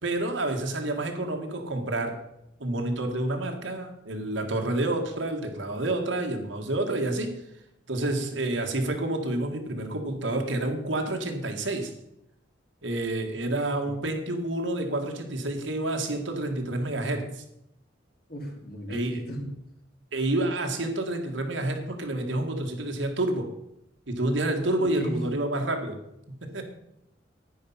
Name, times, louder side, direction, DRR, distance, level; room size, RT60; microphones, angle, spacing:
voice 1, 0.0-2.2 2.6-7.3 7.9-11.9 12.8-17.4 18.9-19.2 20.1-23.5 24.1-26.0 26.4-26.6, right 2 dB, 75° right, 3 dB, 2.0 m, -29 dB
voice 2, 18.3-19.5 24.8-25.3, equal, 55° left, 1 dB, 3.1 m, -35 dB
10.5 x 10.0 x 5.8 m, 0.80 s
head